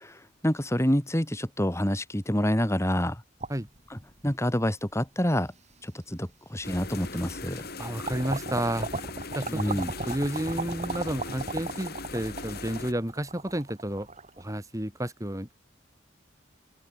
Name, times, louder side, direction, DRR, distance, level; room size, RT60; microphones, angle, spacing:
voice 1, 0.4-3.2 3.9-5.5 5.8-7.6 9.5-9.9, equal, 15° left, 3.0 m, -27 dB
sound 1, 3.4-4.6 5.3-5.4 6.6-6.7 7.1-7.7 8.0-14.5, right 3 dB, 35° right, 6.2 m, -36 dB
sound 2, 6.6-12.9, left 3 dB, 55° left, 5.0 m, -39 dB
voice 2, 7.8-8.9 9.4-14.1 14.4-15.6, right 1 dB, 15° right, 2.1 m, -31 dB
head